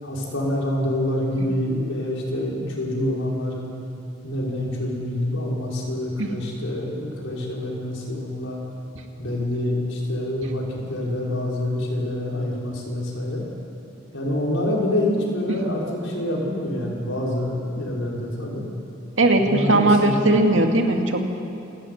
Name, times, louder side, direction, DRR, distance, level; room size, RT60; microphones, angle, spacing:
voice 1, 0.0-3.7 4.2-8.6 9.2-13.5 14.1-18.6 19.3-20.4, left 1 dB, 75° left, -3 dB, 5.7 m, -26 dB
voice 2, 19.2-21.2, right 2 dB, 75° right, 3 dB, 2.4 m, -19 dB
29.0 x 12.5 x 9.7 m, 2.7 s
head